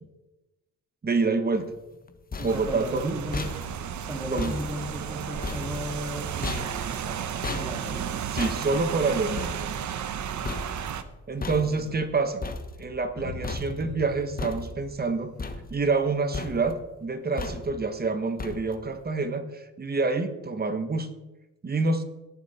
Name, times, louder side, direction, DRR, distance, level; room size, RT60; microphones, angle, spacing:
voice 1, 1.0-1.7 2.4-3.2 4.3-4.5 8.3-9.5 11.3-12.4 12.8-15.3 15.7-21.1 21.6-22.0, right 3 dB, 30° right, 9 dB, 1.4 m, -27 dB
sound 1, 1.9-13.2 13.4-14.0 14.4-15.0 15.4-16.1 16.3-16.9 17.4-17.9 18.4-18.9, left 3 dB, 30° left, 1.3 m, -37 dB
voice 2, 2.4-3.5 4.0-8.2 11.4-11.9, equal, 10° right, 1 dB, 2.2 m, -36 dB
Rain, 2.5-11.0, right 9 dB, 65° right, 1.0 m, -33 dB
sound 2, 13.2-15.9, left 4 dB, 65° left, 1.9 m, -41 dB
18.5 x 6.7 x 4.3 m, 1.0 s
cardioid pair, 95°, 32 cm